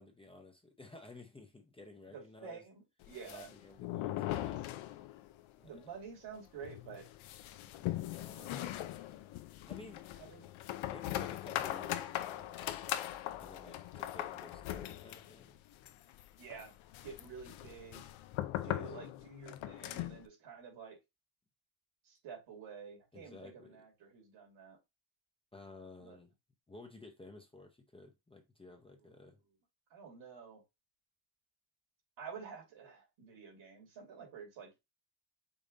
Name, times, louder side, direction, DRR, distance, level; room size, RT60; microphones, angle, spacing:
voice 1, 0.0-2.7 3.3-4.7 5.6-6.0 7.8-8.8 9.7-10.0 10.9-12.6 13.4-15.6 18.6-19.0 23.1-23.9 25.5-26.3 26.7-29.4, left 3 dB, 10° left, 0.7 m, -54 dB
voice 2, 2.4-3.5 5.6-7.0 8.5-8.6 10.2-10.5 16.4-16.7 17.0-18.0 18.6-21.0 22.1-24.8 26.0-26.2 29.9-30.6 32.2-34.8, right 6 dB, 75° right, 2.7 m, -50 dB
sound 1, 3.0-5.4 5.7-5.8 6.1-6.2 6.6-20.3, left 14 dB, 80° left, 0.6 m, -40 dB
5.3 x 2.6 x 3.9 m
cardioid pair, 120°, 46 cm